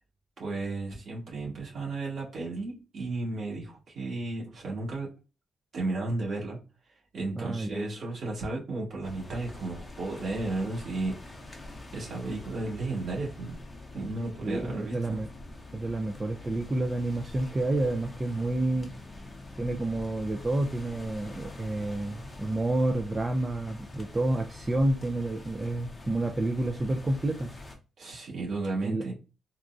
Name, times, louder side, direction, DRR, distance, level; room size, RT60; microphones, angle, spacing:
voice 1, 0.4-5.1 5.7-6.6 7.1-11.6 11.9-13.5 13.9-15.2 28.0-29.1, right 2 dB, 50° right, -3 dB, 1.8 m, -34 dB
voice 2, 7.3-7.9 14.4-15.3 15.7-18.9 19.6-27.5 28.8-29.0, right 2 dB, 20° right, 4 dB, 0.3 m, -29 dB
sound 1, 9.0-27.8, left 2 dB, 15° left, 0.7 m, -45 dB
4.0 x 2.3 x 2.4 m, 0.32 s
cardioid pair, 150°, 0 cm